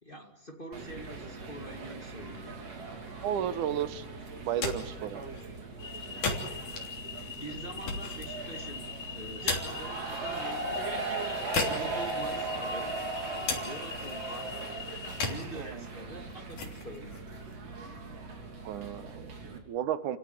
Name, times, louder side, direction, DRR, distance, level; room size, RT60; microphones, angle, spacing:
voice 1, 0.0-2.6 7.4-11.0 11.6-13.0 13.6-14.5 15.1-17.1, right 1 dB, 20° left, 3 dB, 2.1 m, -45 dB
sound 1, 0.7-19.6, right 3 dB, 55° right, 4.1 m, -39 dB
voice 2, 3.2-4.1 4.4-5.2 15.6-15.9 18.6-20.2, right 10 dB, 85° right, 12 dB, 2.6 m, -33 dB
sound 2, 4.4-18.3, left 4 dB, 80° left, 4.7 m, -39 dB
sound 3, 5.8-15.3, left 7 dB, 65° left, 0.8 m, -43 dB
29.5 x 17.0 x 9.4 m, 1.0 s
omnidirectional pair, 3.5 m